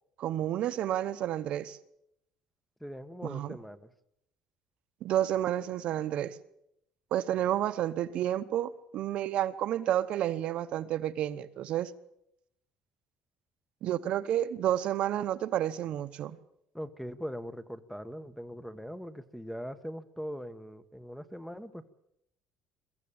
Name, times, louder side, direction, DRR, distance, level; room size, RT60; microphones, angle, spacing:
voice 1, 0.2-1.8 3.2-3.6 5.0-6.4 7.1-11.9 13.8-16.4, right 11 dB, 55° right, 0.9 m, -30 dB
voice 2, 2.8-3.9 16.7-21.9, equal, ahead, 1.1 m, -41 dB
22.0 x 15.0 x 8.7 m
cardioid pair, 150°, 2 cm